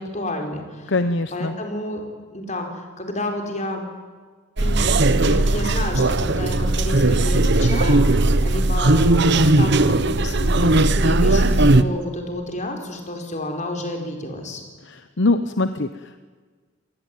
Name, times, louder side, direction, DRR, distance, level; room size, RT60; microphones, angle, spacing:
voice 1, 0.0-0.9 1.3-2.0 2.3-3.8 4.6-14.6, left 1 dB, 35° left, 3 dB, 4.8 m, -30 dB
voice 2, 0.9-1.5 14.8-16.2, left 2 dB, 60° left, 10 dB, 0.9 m, -23 dB
sound 1, 4.6-11.8, right 2 dB, 55° right, 1.1 m, -17 dB
27.0 x 19.0 x 9.3 m, 1.5 s
head